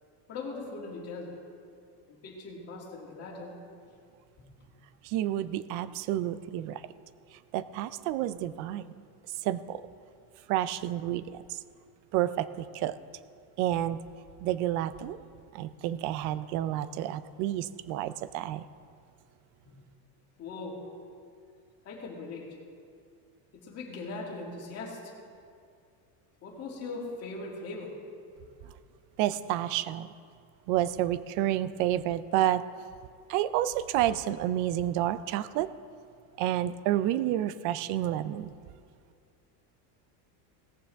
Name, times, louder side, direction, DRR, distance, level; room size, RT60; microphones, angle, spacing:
voice 1, 0.3-1.3 2.1-3.5 19.7-19.8 20.4-20.9 21.8-22.5 23.5-25.1 26.4-28.0, left 3 dB, 30° left, -3 dB, 2.6 m, -40 dB
voice 2, 5.0-6.8 7.5-8.8 9.4-9.8 10.5-11.6 12.1-13.0 13.6-14.0 14.4-15.2 15.5-18.6 29.2-30.1 30.7-32.6 33.3-35.7 36.4-38.5, right 12 dB, 45° right, 15 dB, 0.4 m, -29 dB
18.0 x 14.5 x 3.5 m, 2.3 s
cardioid pair, 165°, 47 cm